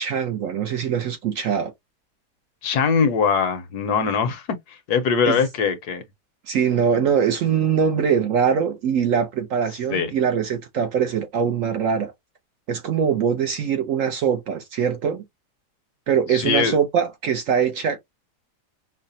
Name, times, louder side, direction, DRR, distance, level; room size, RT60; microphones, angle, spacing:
voice 1, 0.0-1.7 5.3-5.4 6.5-12.1 12.7-15.2 16.1-18.0, right 7 dB, 65° right, 0.8 m, -22 dB
voice 2, 2.6-4.4 4.7-6.0 9.9-10.1 16.3-16.8, left 6 dB, 75° left, 1.2 m, -22 dB
5.6 x 2.1 x 2.6 m
omnidirectional pair, 1.8 m